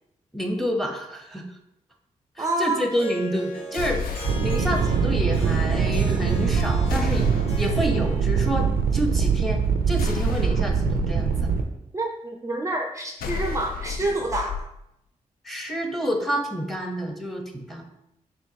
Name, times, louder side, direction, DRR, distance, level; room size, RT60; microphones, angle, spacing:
voice 1, 0.3-1.4 2.4-4.0 4.4-7.3 7.6-9.6 9.9-11.5 15.4-17.8, equal, ahead, 3 dB, 0.9 m, -28 dB
voice 2, 2.4-2.9 11.9-14.7, right 2 dB, 20° right, 3 dB, 0.4 m, -27 dB
Harp, 2.9-8.7, right 1 dB, 40° left, 1.4 m, -39 dB
sound 1, 3.7-4.8 6.9-7.9 10.0-11.1 13.2-14.6, left 5 dB, 80° left, 0.4 m, -32 dB
sound 2, 4.2-11.6, right 6 dB, 90° right, 0.4 m, -23 dB
4.3 x 2.7 x 2.8 m, 0.83 s
supercardioid pair, 40°, 15 cm